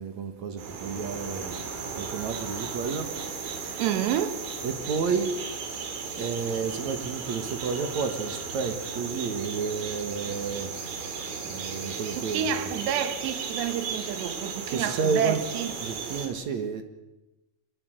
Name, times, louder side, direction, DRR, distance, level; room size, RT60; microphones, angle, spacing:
voice 1, 0.0-1.6 2.0-3.8 4.6-5.4 6.2-10.9 11.4-12.7 14.7-15.4 15.8-16.8, right 5 dB, 55° right, 2.1 m, -31 dB
sound 1, 0.6-16.3, right 5 dB, 90° right, 5.4 m, -35 dB
voice 2, 3.8-4.4 12.1-15.7, right 9 dB, 75° right, 3.3 m, -29 dB
25.0 x 21.5 x 7.9 m
omnidirectional pair, 5.2 m